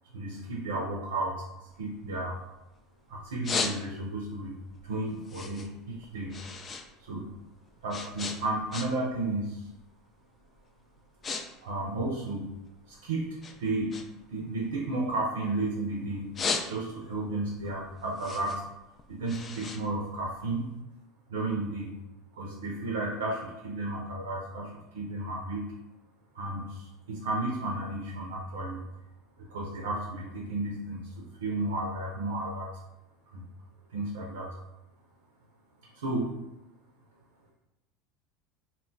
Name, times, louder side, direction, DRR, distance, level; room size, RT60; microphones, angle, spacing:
voice 1, 0.1-2.4 3.1-4.6 4.8-6.4 7.0-7.3 7.8-9.7 11.6-12.5 12.9-14.0 14.3-16.3 16.6-18.6 19.1-20.8 21.3-21.9 22.3-25.6 26.3-28.8 29.5-32.7 33.3-33.4 33.9-34.5 35.8-36.3, right 2 dB, 85° right, 0 dB, 0.4 m, -33 dB
sound 1, 1.7-2.8 3.2-4.2 4.7-6.9 7.1-9.2 9.5-9.8 10.4-10.6 10.9-11.4 11.7-12.9 13.4-15.7 16.1-17.2 17.6-20.7, left 4 dB, 35° left, 0.3 m, -36 dB
2.2 x 2.1 x 3.7 m, 0.91 s
hypercardioid pair, 90°, 0 cm